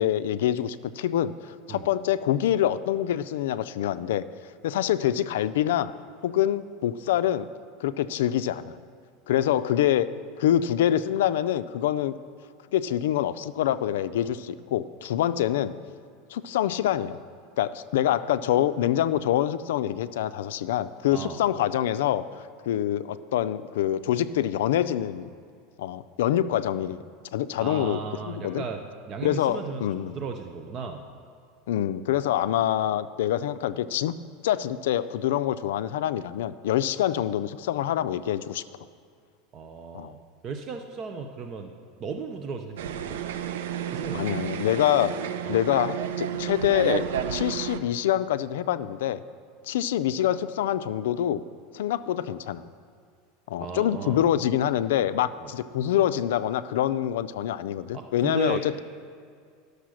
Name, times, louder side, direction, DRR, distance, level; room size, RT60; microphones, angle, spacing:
voice 1, 0.0-1.3 1.7-4.3 4.6-5.9 6.2-7.5 7.8-8.8 9.3-10.1 10.4-12.1 12.7-15.8 16.3-17.2 17.6-22.2 22.7-25.3 25.8-27.0 27.3-28.0 28.3-28.6 29.2-30.2 31.7-34.2 34.4-38.6 39.9-40.1 44.1-45.1 45.5-49.2 49.6-51.4 51.7-52.7 53.5-58.8, left 11 dB, 85° left, 13 dB, 0.4 m, -25 dB
voice 2, 27.6-29.8 30.1-31.0 39.5-41.7 42.0-43.2 43.9-44.4 45.4-45.6 53.6-54.3 55.4-55.5 57.9-58.8, right 5 dB, 30° right, 5 dB, 0.6 m, -35 dB
sound 1, 42.8-47.8, right 9 dB, 90° right, 0.6 m, -31 dB
11.5 x 6.6 x 6.3 m, 2.2 s
supercardioid pair, 160°, 0 cm